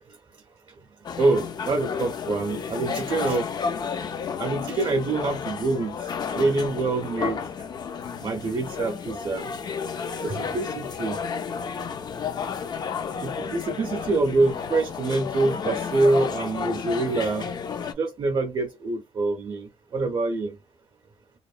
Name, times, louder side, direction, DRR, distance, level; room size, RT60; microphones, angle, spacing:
sound 1, 1.0-17.9, left 6 dB, 45° left, 0.4 m, -32 dB
voice 1, 1.2-3.5 4.4-6.0 6.3-7.4 8.2-9.5 10.2-11.2 13.2-17.5 18.0-20.5, right 3 dB, 40° right, 0.5 m, -25 dB
2.9 x 2.1 x 2.4 m
cardioid pair, 125°, 10 cm